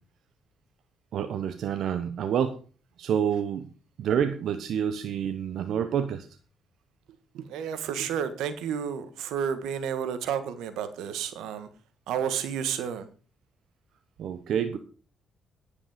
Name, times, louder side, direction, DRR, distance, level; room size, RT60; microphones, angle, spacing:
voice 1, 1.1-2.6 3.0-3.7 4.0-6.3 14.2-14.8, right 8 dB, 70° right, 9 dB, 1.0 m, -28 dB
voice 2, 7.3-11.7 12.1-13.1, right 8 dB, 90° right, 11 dB, 1.6 m, -31 dB
10.0 x 8.6 x 5.1 m, 0.38 s
cardioid pair, 90°, 0 cm